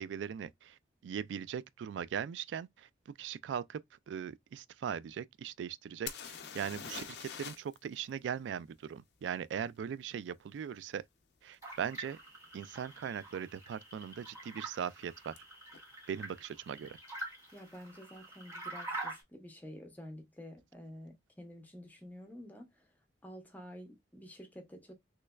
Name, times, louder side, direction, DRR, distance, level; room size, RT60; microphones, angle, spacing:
voice 1, 0.0-11.0 11.4-12.2 12.5-15.4 16.1-17.0, right 8 dB, 85° right, 0.3 m, -40 dB
sound 1, 6.1-7.8 8.0-8.1 11.5-11.6 12.3-12.5 12.7-13.3 15.4-15.5 15.7-15.8, left 7 dB, 65° left, 0.5 m, -44 dB
sound 2, 11.6-19.2, right 2 dB, 15° right, 1.9 m, -46 dB
voice 2, 17.5-22.8 23.2-24.9, equal, 10° left, 0.8 m, -50 dB
3.2 x 3.1 x 2.3 m
head